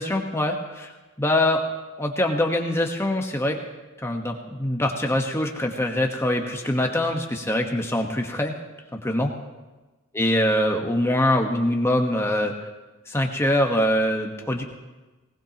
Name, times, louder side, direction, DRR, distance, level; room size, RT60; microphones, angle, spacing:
voice 1, 0.0-1.6 2.0-3.6 4.0-8.5 9.0-9.3 10.1-12.5 13.1-14.6, left 1 dB, 10° left, 2 dB, 1.2 m, -23 dB
19.5 x 19.0 x 3.0 m, 1.2 s
head